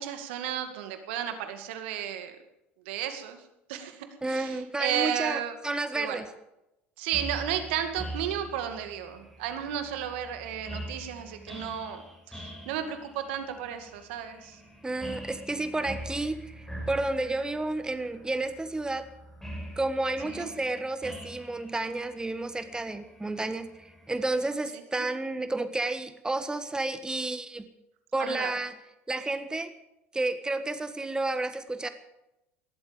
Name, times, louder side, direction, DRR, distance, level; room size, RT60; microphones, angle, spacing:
voice 1, 0.0-2.4 2.9-3.4 3.7-5.5 5.9-6.2 7.0-12.0 12.3-14.6 20.3-20.5 25.0-25.1 28.2-28.5, right 10 dB, 70° right, 7 dB, 2.1 m, -33 dB
voice 2, 4.2-6.3 14.8-19.1 19.8-27.7 28.1-28.8 29.1-29.7 30.1-31.9, right 2 dB, 10° right, 10 dB, 1.4 m, -31 dB
sound 1, 7.1-24.4, equal, 5° left, 7.3 m, -44 dB
19.0 x 13.5 x 5.2 m, 0.90 s
hypercardioid pair, 70°, 6 cm